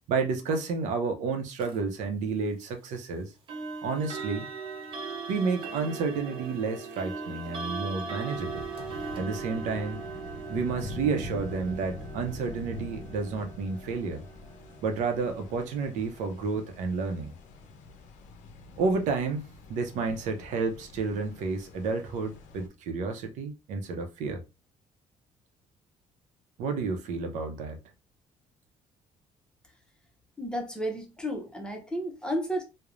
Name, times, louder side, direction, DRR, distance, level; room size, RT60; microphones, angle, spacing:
voice 1, 0.1-3.3 3.8-4.5 5.3-8.7 9.2-10.0 10.5-14.2 14.8-17.3 18.8-24.4 26.6-27.8, right 4 dB, 90° right, 0.6 m, -31 dB
sound 1, 1.6-1.8 3.5-16.3, right 4 dB, 45° right, 0.6 m, -40 dB
sound 2, 8.3-22.7, left 2 dB, 85° left, 0.5 m, -44 dB
voice 2, 30.4-32.6, equal, 5° left, 0.5 m, -32 dB
3.1 x 2.0 x 2.4 m
cardioid pair, 160°, 12 cm